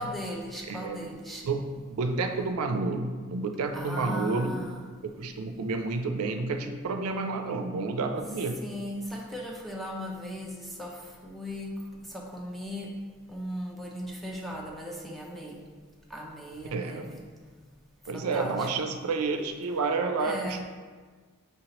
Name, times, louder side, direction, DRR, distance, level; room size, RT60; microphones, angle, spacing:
voice 1, 0.0-1.4 3.7-4.9 8.6-11.7 12.0-12.9 13.3-15.6 16.1-17.2 18.1-18.7 20.2-20.6, equal, ahead, -2 dB, 0.5 m, -37 dB
voice 2, 0.7-1.1 1.4-4.5 5.0-8.6 16.7-17.1 18.1-20.6, right 3 dB, 85° right, 6 dB, 0.4 m, -30 dB
5.5 x 3.0 x 2.9 m, 1.5 s
head